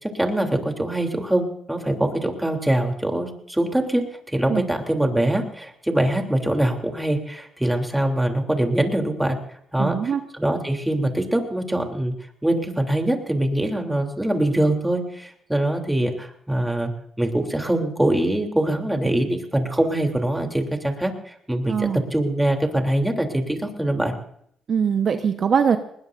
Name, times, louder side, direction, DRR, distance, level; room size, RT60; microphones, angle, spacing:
voice 1, 0.0-9.4 9.7-12.1 12.4-16.9 17.2-24.1, right 1 dB, 5° right, 3 dB, 3.3 m, -23 dB
voice 2, 9.8-10.2 21.7-22.0 24.7-25.8, right 7 dB, 50° right, 7 dB, 1.1 m, -21 dB
21.0 x 20.0 x 2.7 m, 0.68 s
cardioid pair, 90°, 0 cm